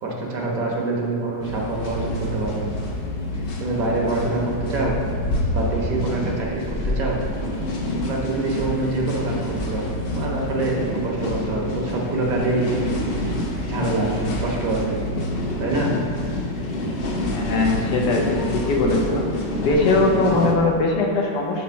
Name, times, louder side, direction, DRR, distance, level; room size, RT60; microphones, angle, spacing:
voice 1, 0.0-2.7 3.6-5.0 5.5-7.2 8.0-13.0 13.7-15.0 15.6-16.0, right 2 dB, 60° right, -2 dB, 1.2 m, -25 dB
sound 1, 1.4-20.5, left 1 dB, 60° left, 0.6 m, -27 dB
voice 2, 17.3-19.2 19.6-21.6, left 2 dB, 80° left, 0 dB, 1.4 m, -21 dB
4.2 x 4.1 x 5.6 m, 2.6 s
omnidirectional pair, 1.8 m